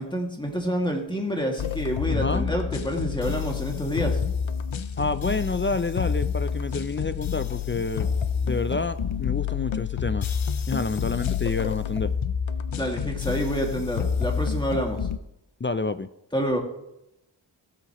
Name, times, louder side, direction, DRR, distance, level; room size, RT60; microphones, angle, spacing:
voice 1, 0.0-4.2 12.7-15.1 16.3-16.6, equal, 10° left, 0 dB, 2.3 m, -28 dB
sound 1, 1.6-15.2, left 7 dB, 85° left, 0.6 m, -28 dB
voice 2, 2.1-2.5 5.0-8.1 8.4-10.3 10.7-12.1 15.6-16.1, left 3 dB, 25° left, 12 dB, 0.4 m, -28 dB
15.5 x 7.9 x 3.1 m, 0.84 s
wide cardioid pair, 40°, 46 cm